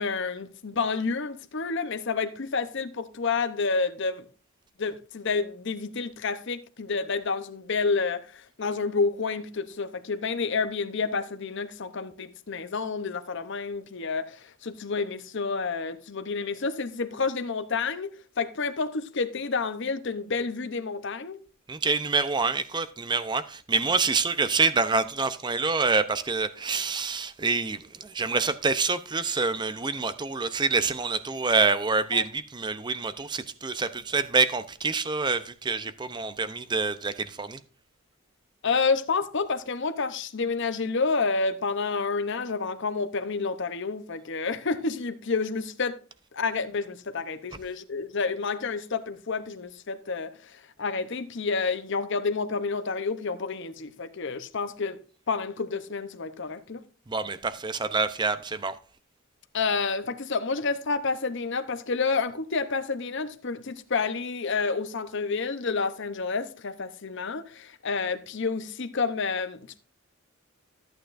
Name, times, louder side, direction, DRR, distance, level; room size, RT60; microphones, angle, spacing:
voice 1, 0.0-4.2 4.8-21.4 32.1-32.2 38.6-46.0 46.3-55.0 55.3-56.8 59.5-69.8, left 4 dB, 55° left, 0.8 m, -29 dB
voice 2, 21.7-37.6 57.1-58.7, right 4 dB, 20° right, 0.6 m, -26 dB
13.5 x 8.9 x 2.6 m
head